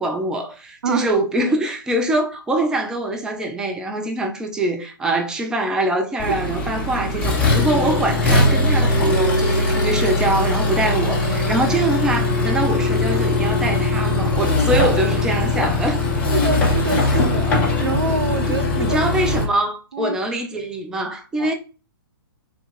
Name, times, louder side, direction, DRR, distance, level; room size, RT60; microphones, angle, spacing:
voice 1, 0.0-16.0 18.4-21.5, right 1 dB, 5° right, 0.3 m, -23 dB
voice 2, 0.8-1.5 16.3-19.0 19.9-20.2 21.4-21.5, right 4 dB, 85° right, 0.4 m, -26 dB
Accelerating revving vroom, 6.2-19.4, left 2 dB, 10° left, 0.8 m, -20 dB
3.5 x 2.3 x 3.0 m
hypercardioid pair, 135°, 12 cm